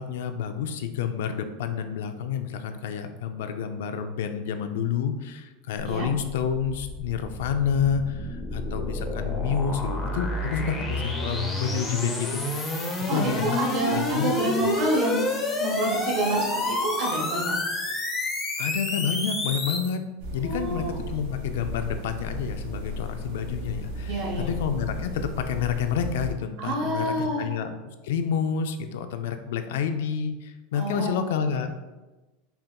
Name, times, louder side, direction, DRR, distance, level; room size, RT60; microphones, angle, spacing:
voice 1, 0.0-12.7 13.1-13.6 13.9-14.3 14.6-14.7 18.6-20.1 20.3-27.7 28.0-31.7, left 7 dB, 80° left, 8 dB, 0.4 m, -29 dB
sound 1, 6.7-19.9, left 1 dB, 20° left, 0.6 m, -29 dB
voice 2, 13.1-17.5 20.4-21.0 24.1-24.5 26.6-27.5 30.7-31.1, right 1 dB, 50° right, -1 dB, 1.2 m, -28 dB
sound 2, 20.2-26.3, equal, 85° right, 1.5 m, -35 dB
5.4 x 2.9 x 2.2 m, 1.1 s
supercardioid pair, 160°, 0 cm